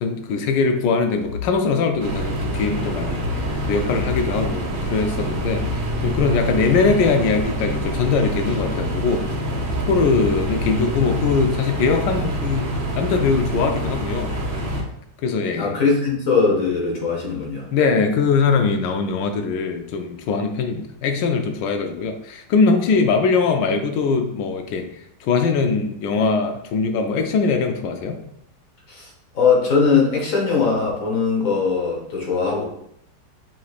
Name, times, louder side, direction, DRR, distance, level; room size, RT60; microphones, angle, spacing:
voice 1, 0.0-3.3 3.7-9.3 9.9-12.7 13.0-14.3 15.2-15.7 17.7-24.9 25.2-28.2, left 4 dB, 80° left, 6 dB, 1.2 m, -21 dB
sound 1, 1.2-7.7 8.0-10.5 10.8-11.8, left 3 dB, 80° right, 1.7 m, -37 dB
sound 2, 2.0-14.8, right 1 dB, 55° right, 1.2 m, -26 dB
voice 2, 15.5-17.6 28.9-29.1 29.3-32.6, left 5 dB, 55° left, -1 dB, 1.3 m, -20 dB
6.0 x 3.1 x 2.4 m, 0.74 s
omnidirectional pair, 1.9 m